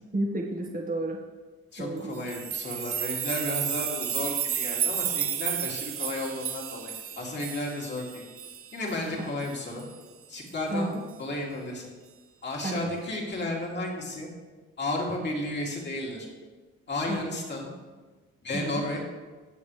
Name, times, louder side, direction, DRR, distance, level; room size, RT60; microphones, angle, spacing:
voice 1, 0.1-1.2 1.8-2.2 10.7-11.0 12.6-12.9 17.1-17.2 18.5-18.8, right 2 dB, 30° right, 0 dB, 1.7 m, -31 dB
voice 2, 1.7-8.2 8.7-9.9 10.3-11.9 12.4-14.3 14.8-16.3 16.9-17.7 18.4-19.0, left 2 dB, 35° left, -2 dB, 3.0 m, -33 dB
sound 1, 2.1-9.0 9.4-9.5 9.8-9.9 10.5-10.6, right 9 dB, 45° right, 0.7 m, -32 dB
19.0 x 6.8 x 3.4 m, 1.3 s
cardioid pair, 90°, 30 cm